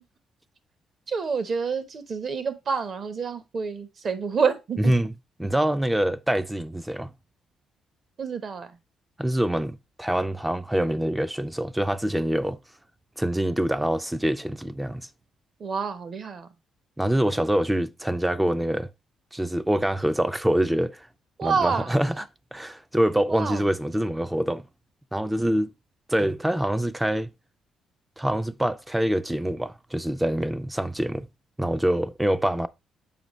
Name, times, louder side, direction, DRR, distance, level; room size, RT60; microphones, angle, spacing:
voice 1, 1.1-4.9 8.2-8.8 15.6-16.5 21.4-21.9 23.3-23.6, right 5 dB, 50° right, 0.9 m, -28 dB
voice 2, 4.8-5.1 5.4-7.1 9.2-12.6 13.2-15.1 17.0-18.9 19.3-21.1 21.4-22.3 22.5-24.7 25.1-25.7 26.1-27.3 28.2-31.3 31.6-32.7, right 1 dB, 10° right, 0.4 m, -25 dB
7.0 x 4.8 x 3.0 m
cardioid pair, 90°, 0 cm